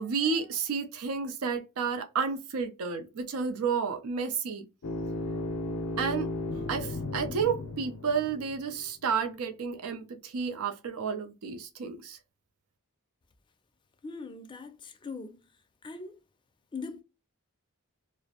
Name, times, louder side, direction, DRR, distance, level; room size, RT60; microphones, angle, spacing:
voice 1, 0.0-4.7 6.0-6.3 6.7-12.2, right 5 dB, 75° right, 0.5 m, -31 dB
sound 1, 4.8-8.8, left 1 dB, 85° left, 0.5 m, -35 dB
voice 2, 14.0-15.4 15.8-16.2 16.7-17.0, left 4 dB, 20° left, 0.4 m, -40 dB
2.4 x 2.0 x 2.7 m
head